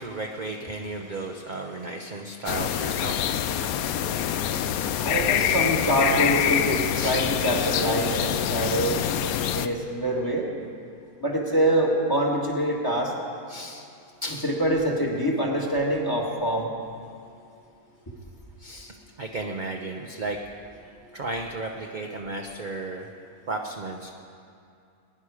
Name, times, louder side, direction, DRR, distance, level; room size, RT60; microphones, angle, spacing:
voice 1, 0.0-5.7 7.0-7.3 7.5-7.8 13.5-13.9 14.2-14.5 18.6-20.4 21.1-23.1 23.5-24.1, right 2 dB, 40° right, 1 dB, 0.8 m, -35 dB
sound 1, 2.5-9.7, left 9 dB, 85° left, 1.1 m, -25 dB
voice 2, 5.0-9.0 9.5-10.5 11.2-13.1 14.4-16.7, right 1 dB, 15° left, -1 dB, 1.6 m, -25 dB
21.0 x 10.5 x 4.9 m, 2.5 s
omnidirectional pair, 1.5 m